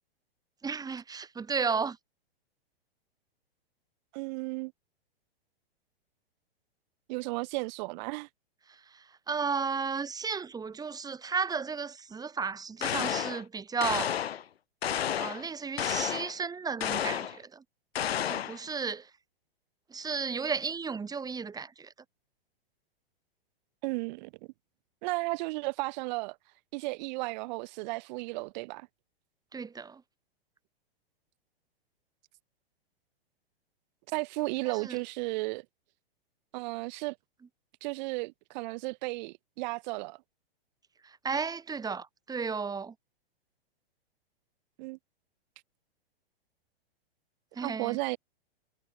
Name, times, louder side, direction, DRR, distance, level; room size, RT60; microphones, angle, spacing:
voice 1, 0.6-2.0 9.3-14.1 15.2-17.6 18.3-19.1 19.9-21.9 29.5-30.0 34.8-35.0 41.2-42.9 47.6-48.0, right 5 dB, 10° right, 2.8 m, -33 dB
voice 2, 4.1-4.7 7.1-8.3 23.8-24.3 25.0-26.4 26.7-28.9 34.1-35.7 36.5-37.2 37.8-40.2 44.8-45.0 47.6-48.2, right 25 dB, 45° right, 5.1 m, -34 dB
sound 1, 12.8-13.4 13.8-14.4 14.8-15.4 15.8-16.3 16.8-17.4 18.0-18.6, left 9 dB, 85° left, 0.6 m, -31 dB
hypercardioid pair, 115°, 30 cm